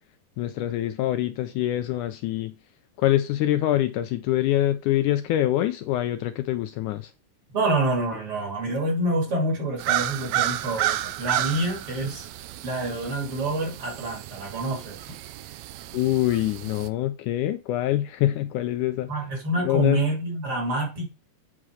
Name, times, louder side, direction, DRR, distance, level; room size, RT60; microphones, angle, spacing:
voice 1, 0.4-2.5 3.0-7.1 15.9-19.1 19.6-20.0, left 13 dB, 80° left, 1.9 m, -25 dB
voice 2, 7.5-12.3 12.6-15.0 19.1-21.2, right 2 dB, 40° right, 3.3 m, -27 dB
sound 1, 9.8-16.9, right 14 dB, 85° right, 1.6 m, -31 dB
8.6 x 4.9 x 6.3 m
omnidirectional pair, 3.9 m